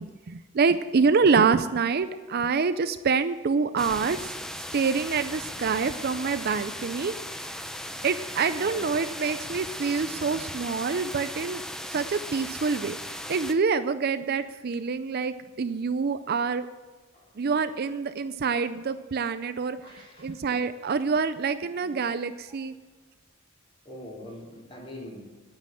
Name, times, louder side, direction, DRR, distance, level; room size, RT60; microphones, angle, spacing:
voice 1, 0.0-4.4 4.7-7.1 8.0-11.6 11.9-13.0 13.3-16.7 17.4-19.8 20.2-22.7, right 5 dB, 45° right, 12 dB, 0.4 m, -26 dB
sound 1, 3.8-13.5, equal, 5° left, 0.6 m, -37 dB
voice 2, 8.5-8.9 17.1-17.4 19.8-20.4 22.5-22.6 23.8-25.2, left 1 dB, 25° left, -3 dB, 3.3 m, -43 dB
9.8 x 9.1 x 7.5 m, 1.4 s
head